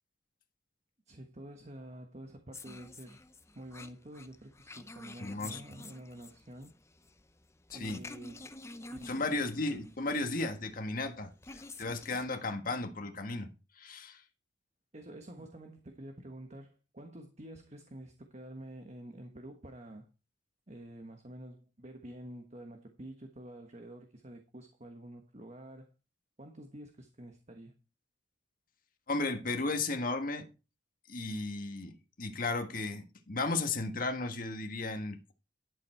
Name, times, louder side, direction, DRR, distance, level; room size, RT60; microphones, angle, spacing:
voice 1, 1.1-3.2 3.5-6.7 7.7-8.5 8.9-9.4 14.9-20.1 20.7-25.9 26.4-27.7, right 1 dB, 40° right, 1.3 m, -48 dB
sound 1, 2.5-12.3, left 2 dB, 15° left, 0.8 m, -50 dB
voice 2, 5.2-5.6 7.7-8.0 9.0-13.5 13.8-14.2 29.1-30.5 31.1-31.9 32.2-35.3, left 3 dB, 50° left, 1.6 m, -34 dB
11.5 x 7.3 x 4.4 m
head